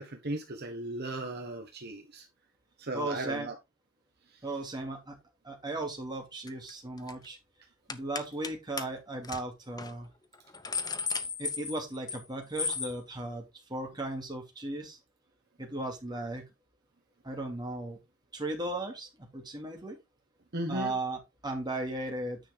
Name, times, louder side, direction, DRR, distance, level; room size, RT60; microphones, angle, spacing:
voice 1, 0.0-2.2 2.8-3.5 4.3-4.4 20.5-20.9, right 1 dB, 50° right, 1.5 m, -36 dB
voice 2, 2.9-3.5 4.4-5.2 5.4-7.4 7.9-10.1 11.4-13.4 13.7-15.0 15.6-16.4 17.2-18.0 18.3-20.0 20.7-22.4, right 2 dB, 20° right, 2.8 m, -36 dB
sound 1, 6.5-6.7 7.0-7.3 7.9-8.5 8.8-8.9 9.2-9.4 9.8-9.9 10.3-12.2 12.6-12.9, left 5 dB, 20° left, 0.8 m, -34 dB
9.6 x 5.6 x 3.7 m
head